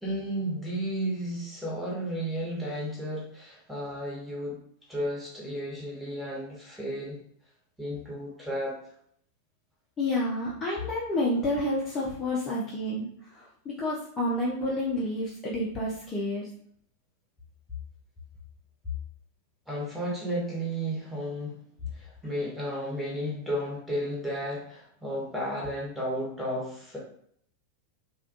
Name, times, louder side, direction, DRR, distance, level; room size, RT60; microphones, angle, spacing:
voice 1, 0.0-4.6 4.9-7.2 7.8-8.8 19.7-21.6 21.9-27.0, equal, 5° right, -6 dB, 1.0 m, -33 dB
voice 2, 10.0-16.5, left 1 dB, 20° left, -6 dB, 0.5 m, -29 dB
2.4 x 2.2 x 2.6 m, 0.66 s
figure-of-eight pair, 90°, 0 cm